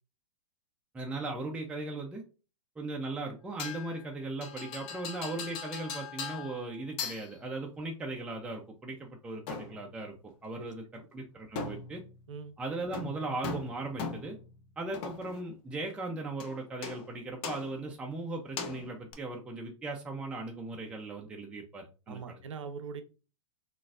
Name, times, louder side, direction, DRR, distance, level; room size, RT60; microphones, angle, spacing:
voice 1, 0.9-2.2 2.8-12.0 12.6-14.4 14.8-22.4, right 2 dB, 5° right, 1 dB, 0.4 m, -38 dB
sound 1, 3.6-4.1 4.4-6.7 7.0-7.6 9.5-9.9 11.6-12.2 12.9-14.5 14.9-15.4 16.4-16.6 16.8-17.2 17.4-17.8 18.6-19.1, left 5 dB, 35° left, 0.6 m, -40 dB
voice 2, 22.1-23.0, right 5 dB, 75° right, 10 dB, 0.6 m, -41 dB
3.8 x 2.5 x 2.4 m, 0.34 s
hypercardioid pair, 110°, 16 cm